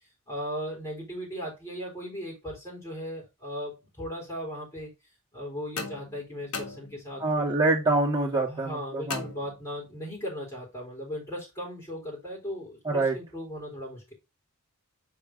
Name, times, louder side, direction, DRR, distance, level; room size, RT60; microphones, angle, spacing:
voice 1, 0.3-4.9 5.3-7.5 8.4-14.1, equal, 15° left, 3.5 m, -37 dB
sound 1, 5.8-7.4 9.1-10.1, left 4 dB, 80° left, 1.7 m, -39 dB
voice 2, 7.2-9.3 12.8-13.2, right 2 dB, 20° right, 2.5 m, -25 dB
6.8 x 4.4 x 3.7 m
head